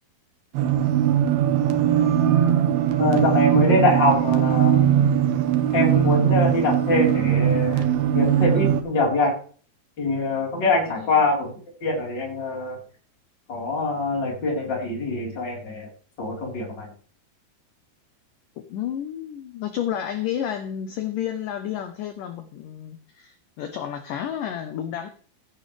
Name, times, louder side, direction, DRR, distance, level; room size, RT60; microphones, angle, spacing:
sound 1, 0.5-8.8, right 10 dB, 70° right, 2.8 m, -20 dB
voice 1, 3.0-4.8 5.7-7.9 8.1-9.4 10.0-11.5 11.8-12.8 13.5-15.9 16.2-16.9, left 2 dB, 25° left, 4.3 m, -23 dB
voice 2, 10.9-11.3 18.7-25.1, left 10 dB, 80° left, 1.9 m, -31 dB
15.5 x 10.5 x 3.3 m
omnidirectional pair, 5.0 m